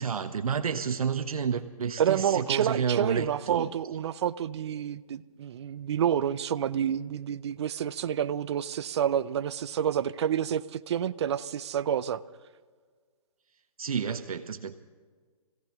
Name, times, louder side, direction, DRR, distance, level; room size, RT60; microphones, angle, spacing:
voice 1, 0.0-3.7 13.8-14.8, right 6 dB, 70° right, 7 dB, 1.0 m, -30 dB
voice 2, 2.0-12.2, right 9 dB, 45° right, 14 dB, 0.6 m, -29 dB
26.0 x 16.5 x 3.1 m, 1.5 s
hypercardioid pair, 150°, 19 cm